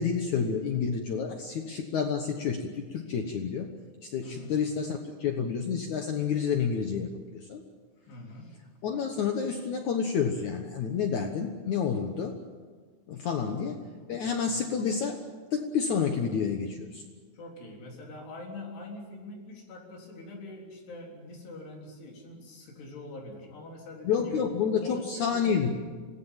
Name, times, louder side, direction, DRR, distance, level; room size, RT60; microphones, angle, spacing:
voice 1, 0.0-3.7 4.0-7.6 8.8-12.4 13.1-13.8 14.1-15.2 15.5-17.0 24.0-25.7, left 6 dB, 80° left, 4 dB, 1.7 m, -29 dB
voice 2, 4.2-4.5 8.1-8.6 13.3-13.7 14.4-14.6 17.3-24.4 24.8-25.8, left 2 dB, 60° left, 0 dB, 5.6 m, -44 dB
26.5 x 19.0 x 7.3 m, 1.5 s
omnidirectional pair, 5.4 m